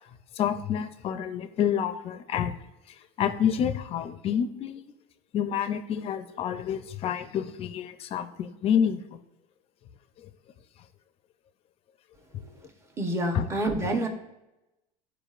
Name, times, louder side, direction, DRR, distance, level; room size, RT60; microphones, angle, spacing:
voice 1, 0.4-2.6 3.2-4.8 5.3-9.2 10.2-10.3 13.3-13.5, left 8 dB, 35° left, 10 dB, 0.5 m, -28 dB
voice 2, 13.0-14.1, right 1 dB, 15° right, 3 dB, 0.9 m, -27 dB
12.0 x 4.7 x 2.4 m, 0.96 s
supercardioid pair, 140°, 17 cm